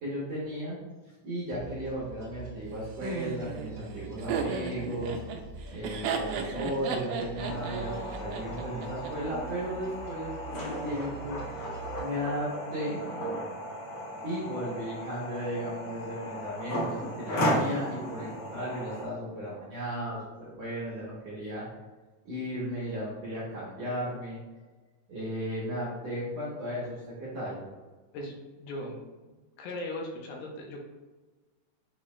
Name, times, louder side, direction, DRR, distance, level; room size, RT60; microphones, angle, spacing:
voice 1, 0.0-0.8 1.2-5.2 5.7-11.7 12.0-13.0 14.2-21.7 22.2-24.4 25.1-27.6, equal, 65° right, -8 dB, 1.7 m, -35 dB
sound 1, 1.5-12.1, right 4 dB, 50° right, 1.9 m, -45 dB
Laughter, 3.0-9.1, right 5 dB, 85° right, 1.8 m, -34 dB
sound 2, 7.4-19.1, equal, 65° left, 1.3 m, -35 dB
voice 2, 28.6-29.0 29.6-30.8, left 1 dB, 80° left, 0 dB, 2.6 m, -38 dB
6.6 x 2.3 x 3.1 m, 1.3 s
omnidirectional pair, 4.2 m